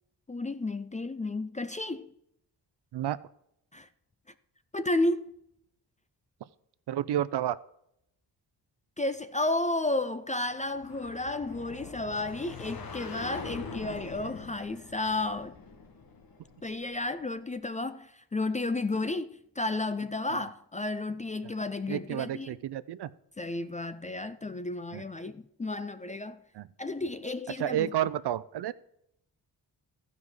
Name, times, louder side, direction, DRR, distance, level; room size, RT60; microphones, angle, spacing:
voice 1, 0.3-2.1 3.7-3.9 4.7-5.3 9.0-15.5 16.6-22.6 23.4-26.4 26.8-27.9, left 2 dB, 20° left, 0.3 m, -32 dB
voice 2, 6.9-7.6 20.3-20.4 21.4-21.5 21.9-23.1 24.9-25.0 26.5-26.7 27.6-28.7, right 11 dB, 75° right, 0.6 m, -31 dB
sound 1, 10.6-17.2, left 4 dB, 60° left, 1.5 m, -44 dB
14.5 x 5.4 x 4.8 m
wide cardioid pair, 170°, 41 cm